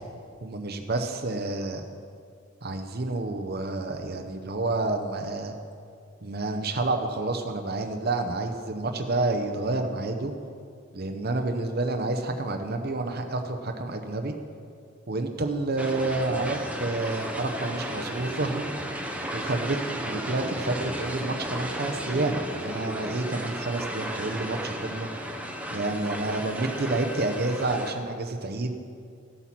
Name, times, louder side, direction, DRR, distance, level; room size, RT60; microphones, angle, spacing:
voice 1, 0.4-1.8 2.6-5.5 6.2-10.3 10.9-14.3 15.1-18.7 19.3-25.1 25.7-28.7, right 2 dB, 50° right, 5 dB, 0.8 m, -29 dB
sound 1, 15.8-27.9, equal, 5° right, 0.9 m, -34 dB
14.5 x 8.3 x 6.0 m, 2.3 s
head